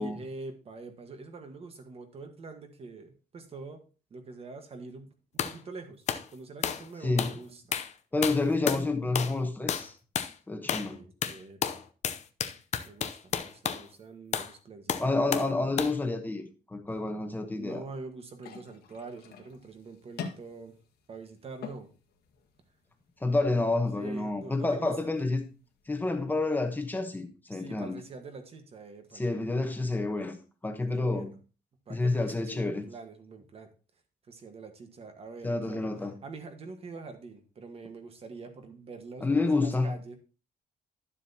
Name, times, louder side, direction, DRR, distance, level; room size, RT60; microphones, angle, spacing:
voice 1, 0.0-3.8 4.1-6.0 6.3-7.8 10.9-11.8 12.8-15.3 17.5-20.8 21.1-21.9 23.9-25.1 27.5-29.7 29.9-30.0 30.9-31.4 31.9-33.7 34.3-35.8 36.2-40.2, right 3 dB, 35° right, 1.4 m, -45 dB
sound 1, 5.4-5.6 6.1-6.3 6.6-6.9 7.2-7.4 7.7-7.9 8.2-8.9 9.1-9.4 9.7-9.9 10.1-10.3 10.7-10.9 11.2-13.8 14.3-14.5 14.9-15.5 15.8-16.0, left 8 dB, 45° left, 0.7 m, -31 dB
voice 2, 8.1-9.9 10.5-11.0 15.0-17.8 23.2-25.4 25.9-28.0 29.1-30.4 30.6-31.3 31.9-32.8 35.4-36.1 39.2-39.9, left 2 dB, 10° left, 1.0 m, -29 dB
sound 2, 18.4-26.4, left 6 dB, 80° left, 1.5 m, -48 dB
12.0 x 7.4 x 2.8 m
cardioid pair, 170°, 16 cm